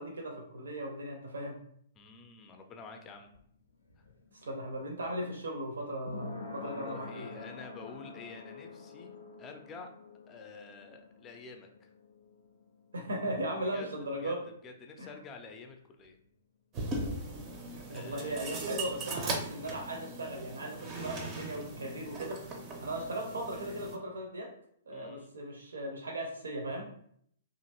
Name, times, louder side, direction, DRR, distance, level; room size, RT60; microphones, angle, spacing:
voice 1, 0.0-1.6 4.4-7.3 12.9-14.4 15.0-15.1 17.9-22.4 22.8-24.5 24.9-26.8, right 1 dB, 70° right, 1 dB, 0.6 m, -37 dB
voice 2, 1.9-3.3 6.6-9.9 10.3-11.9 13.6-14.3 14.6-16.2 17.9-18.6 24.9-25.3, left 4 dB, 20° left, 4 dB, 0.4 m, -49 dB
sound 1, 3.0-14.5 14.8-14.9, left 4 dB, 80° left, 0.5 m, -48 dB
sound 2, 16.7-24.0, right 2 dB, 30° right, 0.5 m, -39 dB
2.9 x 2.5 x 2.8 m, 0.67 s
figure-of-eight pair, 115°, 0 cm